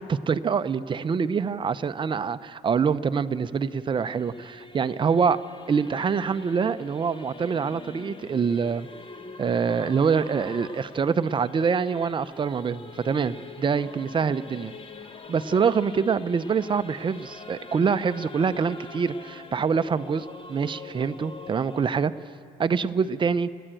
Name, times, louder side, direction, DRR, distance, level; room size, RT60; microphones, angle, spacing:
voice 1, 0.0-5.4 5.7-8.9 9.4-14.7 15.3-22.1 22.6-23.5, right 6 dB, 30° right, 13 dB, 0.6 m, -25 dB
Singing / Musical instrument, 2.9-22.1, left 4 dB, 30° left, 1.3 m, -44 dB
29.0 x 10.0 x 9.0 m, 2.2 s
cardioid pair, 110°, 17 cm